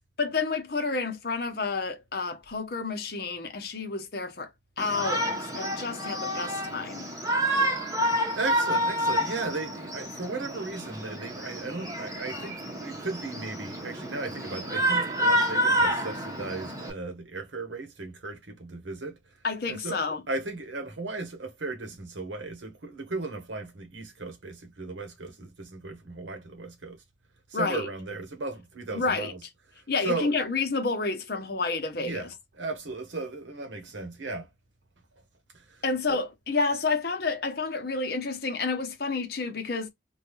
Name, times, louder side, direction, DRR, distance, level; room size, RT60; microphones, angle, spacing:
voice 1, 0.2-4.5 4.8-7.1 19.4-20.2 27.5-27.9 28.9-29.3 29.9-32.3 35.8-39.9, left 4 dB, 55° left, 0.8 m, -30 dB
Shout, 4.8-16.9, equal, 20° right, 0.8 m, -29 dB
voice 2, 8.3-19.2 19.7-27.0 27.5-29.4 30.0-30.4 32.0-34.5 35.7-36.2, right 3 dB, 80° right, 1.0 m, -36 dB
3.5 x 2.3 x 3.0 m
head